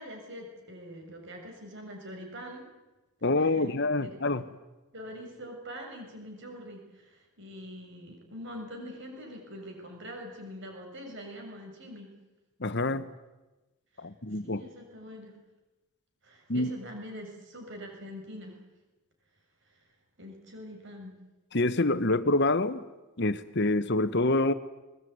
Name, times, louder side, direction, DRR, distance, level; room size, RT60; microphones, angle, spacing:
voice 1, 0.0-2.7 3.4-4.2 4.9-12.1 13.9-14.0 14.4-15.4 16.2-18.6 19.7-19.8 20.2-21.1, equal, 55° right, 2 dB, 6.9 m, -44 dB
voice 2, 3.2-4.4 12.6-13.1 14.0-14.6 16.5-16.7 21.5-22.8 23.2-24.5, left 2 dB, 50° left, 13 dB, 1.3 m, -26 dB
21.5 x 20.5 x 9.5 m, 1.1 s
head